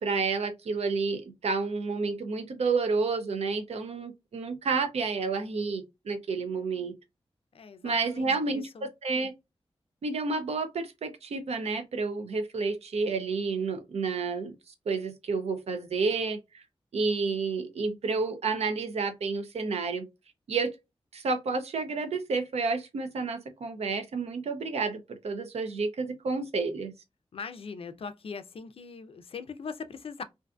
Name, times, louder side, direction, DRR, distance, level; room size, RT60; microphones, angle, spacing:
voice 1, 0.0-6.9 7.8-9.3 10.0-14.5 14.9-16.4 16.9-20.1 20.5-20.7 21.1-25.0 25.2-26.9, right 4 dB, 85° right, 0.5 m, -30 dB
voice 2, 7.5-8.9 27.3-30.2, left 5 dB, 60° left, 0.4 m, -41 dB
2.5 x 2.4 x 2.2 m
wide cardioid pair, 100°, 11 cm